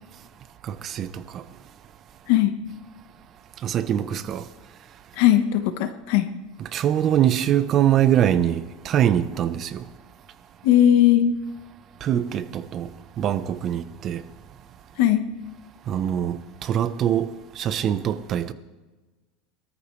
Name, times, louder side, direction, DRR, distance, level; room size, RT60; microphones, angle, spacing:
voice 1, 0.6-1.4 3.6-4.5 6.6-9.8 12.0-12.9 13.2-14.2 15.9-17.3 17.6-18.5, right 10 dB, 35° right, 0.9 m, -23 dB
voice 2, 5.2-6.3 10.6-11.4 15.0-15.2, left 11 dB, 70° left, 1.2 m, -18 dB
23.5 x 13.5 x 3.3 m
supercardioid pair, 135°, 0 cm